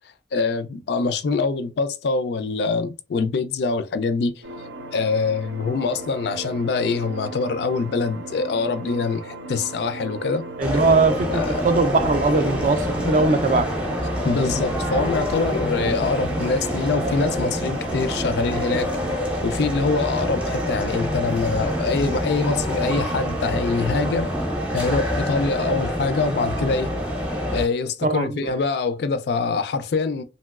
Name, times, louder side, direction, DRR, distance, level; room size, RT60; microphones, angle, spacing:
voice 1, 0.3-4.4 4.9-10.4 11.3-11.7 13.0-13.1 14.2-18.9 19.4-24.4 24.7-27.0 27.5-30.2, left 4 dB, 60° left, 0.3 m, -24 dB
sound 1, 4.4-19.2, right 2 dB, 80° right, 0.6 m, -37 dB
sound 2, 10.6-27.7, equal, 5° right, 0.7 m, -26 dB
voice 2, 10.6-13.7 28.0-28.5, right 3 dB, 40° right, 0.4 m, -20 dB
3.0 x 2.8 x 2.3 m
head